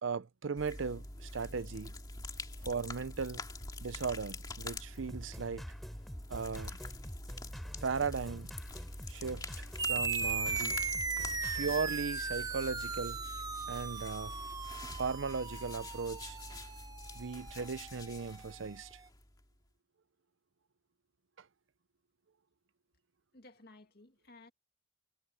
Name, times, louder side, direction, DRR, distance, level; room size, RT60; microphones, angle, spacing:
voice 1, 0.0-1.9 2.6-3.4 3.8-5.6 6.3-6.8 7.8-8.5 9.1-10.7 11.5-13.2 13.7-14.4 14.9-16.4 17.1-19.0, right 5 dB, 80° right, 0.6 m, -37 dB
sound 1, 0.6-19.5, left 2 dB, 20° left, 2.3 m, -46 dB
sound 2, 5.0-11.7, equal, ahead, 4.0 m, -47 dB
sound 3, 9.8-18.7, right 4 dB, 20° right, 0.7 m, -38 dB
voice 2, 23.3-24.5, left 2 dB, 50° left, 2.2 m, -56 dB
head